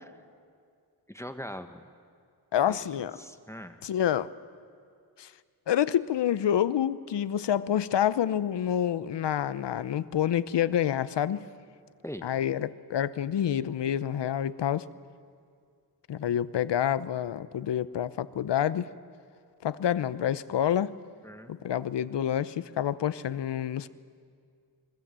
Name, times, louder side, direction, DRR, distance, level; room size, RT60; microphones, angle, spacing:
voice 1, 1.1-1.9 2.7-2.9 3.2-3.8 12.0-12.3 21.2-21.5, equal, 5° left, 7 dB, 1.3 m, -41 dB
voice 2, 2.5-3.2 3.8-4.3 5.2-5.3 5.7-11.5 12.2-14.9 16.1-18.9 19.6-20.9 21.5-23.9, left 10 dB, 75° left, 16 dB, 0.8 m, -28 dB
26.0 x 22.0 x 7.6 m, 2.2 s
cardioid pair, 85°, 42 cm